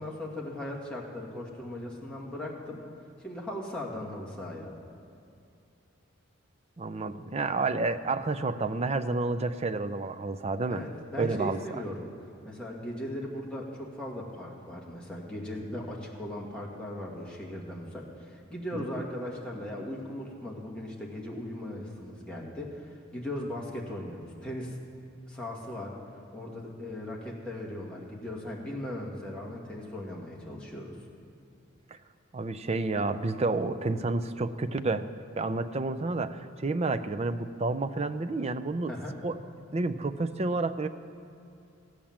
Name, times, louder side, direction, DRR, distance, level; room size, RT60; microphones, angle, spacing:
voice 1, 0.0-2.8 3.2-4.7 10.7-12.1 12.4-24.8 25.3-26.0 26.3-31.0 38.9-39.2, left 1 dB, 5° left, -3 dB, 2.0 m, -38 dB
voice 2, 6.8-10.8 11.2-11.6 18.7-18.8 32.3-35.1 35.4-38.9 39.2-39.4 39.7-40.9, right 3 dB, 30° right, 10 dB, 0.5 m, -30 dB
15.0 x 8.7 x 7.4 m, 2.6 s
head